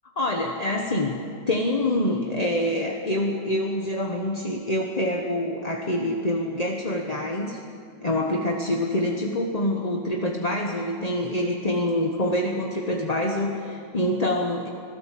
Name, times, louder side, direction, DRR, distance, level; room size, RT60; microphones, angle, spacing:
voice 1, 0.2-1.2 1.5-7.6 8.0-14.7, left 1 dB, 25° left, 1 dB, 1.0 m, -26 dB
26.0 x 17.0 x 7.6 m, 2.4 s
omnidirectional pair, 2.2 m